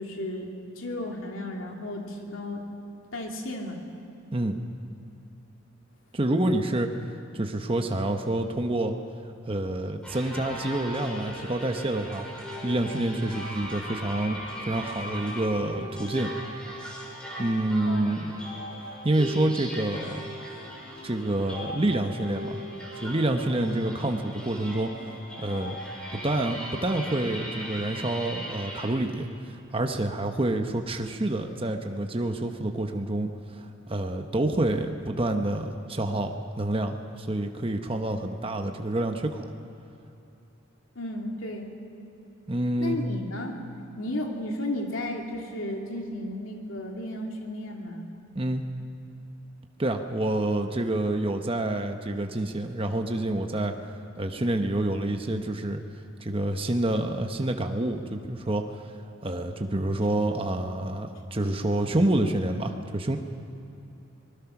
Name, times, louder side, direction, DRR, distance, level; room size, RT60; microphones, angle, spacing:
voice 1, 0.0-2.7 3.1-3.8 14.8-15.1 17.9-18.1 40.9-41.7 42.8-43.6 44.0-48.1, left 1 dB, 75° left, 1 dB, 2.8 m, -34 dB
voice 2, 6.1-6.9 7.3-8.9 9.4-12.3 12.6-16.3 17.4-18.3 18.9-20.2 21.0-22.6 23.0-24.9 25.4-25.8 26.1-29.3 29.7-39.5 42.5-43.0 48.3-48.6 49.8-53.7 54.2-55.8 56.2-58.8 59.2-63.2, right 1 dB, 25° right, 5 dB, 1.0 m, -28 dB
sound 1, 10.0-28.9, equal, 5° left, 4.6 m, -38 dB
24.5 x 20.5 x 6.0 m, 2.9 s
head